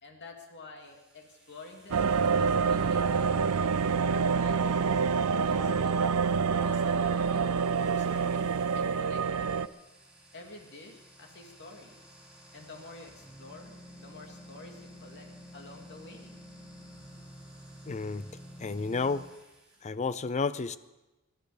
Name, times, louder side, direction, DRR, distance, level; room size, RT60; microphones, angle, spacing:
voice 1, 0.0-3.4 4.0-4.6 5.4-6.0 6.5-9.6 10.3-12.0 12.5-16.4, left 2 dB, 55° left, 2 dB, 2.6 m, -49 dB
sound 1, 0.8-19.9, equal, 5° right, 3.1 m, -53 dB
sound 2, 1.9-9.7, right 5 dB, 80° right, 0.6 m, -27 dB
voice 2, 17.9-18.3 18.6-19.2 19.8-20.8, left 4 dB, 30° left, 15 dB, 0.5 m, -31 dB
22.0 x 11.5 x 5.1 m, 1.0 s
head